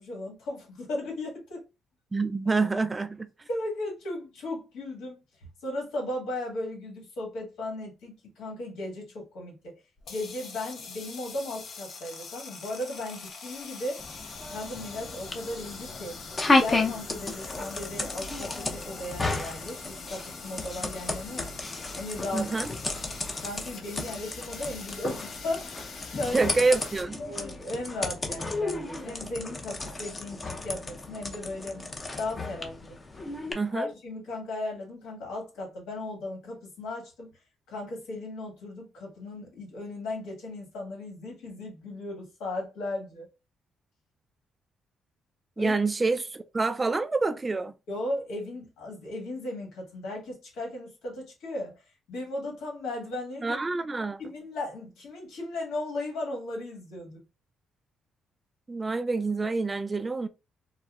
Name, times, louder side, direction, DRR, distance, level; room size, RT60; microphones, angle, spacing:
voice 1, 0.0-1.6 3.5-5.2 5.6-9.8 10.1-14.0 14.5-16.2 16.6-21.5 21.9-22.5 23.4-26.5 27.2-31.9 32.2-33.0 33.7-37.3 37.7-43.3 45.6-45.7 47.9-53.6 54.2-57.2, left 2 dB, 85° left, 1.5 m, -36 dB
voice 2, 2.1-3.3 22.3-22.7 26.3-27.2 33.5-33.9 45.6-47.7 53.4-54.2 58.7-60.3, right 3 dB, 25° right, 0.4 m, -27 dB
sound 1, 10.0-27.0, left 4 dB, 65° left, 0.7 m, -44 dB
sound 2, 14.0-33.5, left 2 dB, 30° left, 0.7 m, -33 dB
4.0 x 2.1 x 2.3 m
cardioid pair, 90°, 0 cm